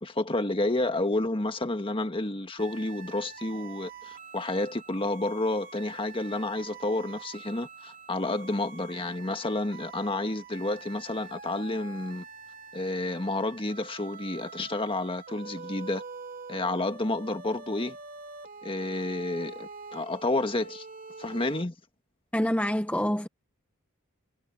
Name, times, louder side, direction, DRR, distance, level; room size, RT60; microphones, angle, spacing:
voice 1, 0.0-12.2 12.7-16.0 16.5-18.0 18.6-20.9 21.2-21.7, left 2 dB, 25° left, 1.7 m, -30 dB
sound 1, 2.6-21.6, right 4 dB, 45° right, 3.2 m, -45 dB
voice 2, 22.3-23.3, equal, 5° left, 1.1 m, -26 dB
head